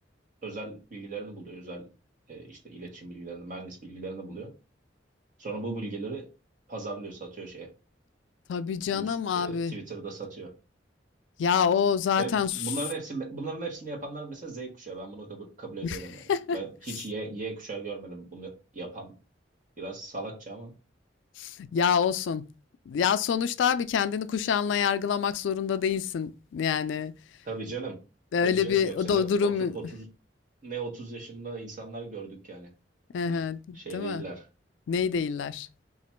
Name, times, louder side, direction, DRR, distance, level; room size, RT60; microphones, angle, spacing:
voice 1, 0.4-1.9 2.3-4.5 5.4-6.3 6.7-7.7 8.9-10.5 12.2-16.2 16.5-19.1 19.8-20.7 27.4-28.0 28.4-30.0 30.6-32.7 33.3-33.4 33.7-34.4, right 3 dB, 45° right, 1.3 m, -38 dB
voice 2, 8.5-9.7 11.4-12.5 15.8-16.0 16.3-16.6 21.4-22.5 22.9-27.1 28.3-29.9 33.1-34.2 34.9-35.7, left 7 dB, 85° left, 0.3 m, -26 dB
2.9 x 2.5 x 4.3 m
head